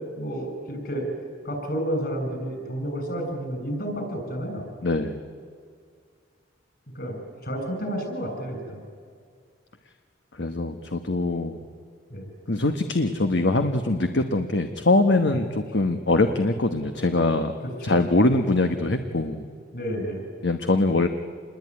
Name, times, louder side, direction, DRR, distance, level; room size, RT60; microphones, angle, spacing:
voice 1, 0.2-1.1 1.4-4.6 6.9-7.1 7.4-8.8 12.1-12.3 15.3-15.4 17.6-18.0 19.7-20.2, equal, 55° left, 4 dB, 7.0 m, -30 dB
voice 2, 4.8-5.2 10.4-11.6 12.5-17.5 17.8-19.5 20.4-21.1, left 2 dB, 70° left, 7 dB, 1.3 m, -23 dB
27.5 x 21.5 x 9.7 m, 2.1 s
head